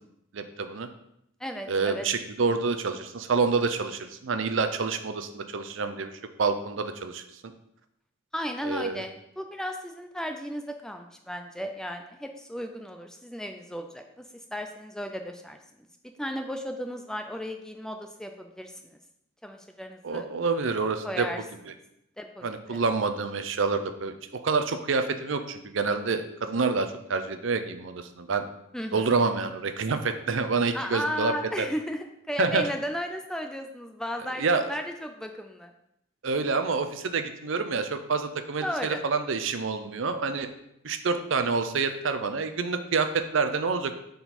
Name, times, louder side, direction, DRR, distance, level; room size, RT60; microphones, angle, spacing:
voice 1, 0.3-0.9 1.7-6.1 6.4-7.2 8.6-9.0 20.0-21.3 22.4-24.1 24.4-28.4 28.9-31.7 32.4-32.7 34.4-34.8 36.2-40.5 40.8-44.0, right 4 dB, 65° right, 8 dB, 0.5 m, -27 dB
voice 2, 1.4-2.1 8.3-15.6 16.2-19.0 19.4-20.3 21.0-21.4 22.2-22.8 28.7-29.1 30.7-35.7 38.6-39.0, equal, 5° left, 5 dB, 0.3 m, -35 dB
6.7 x 3.9 x 4.2 m, 0.79 s
head